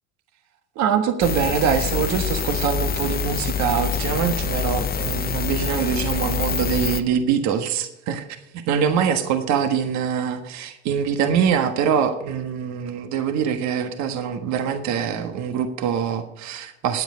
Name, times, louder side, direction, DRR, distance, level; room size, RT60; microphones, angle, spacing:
voice 1, 0.7-8.2 8.5-17.0, right 7 dB, 60° right, 6 dB, 1.5 m, -23 dB
sound 1, 1.2-7.0, left 7 dB, 30° left, 0.8 m, -26 dB
14.0 x 9.5 x 5.1 m, 0.84 s
hypercardioid pair, 80°, 31 cm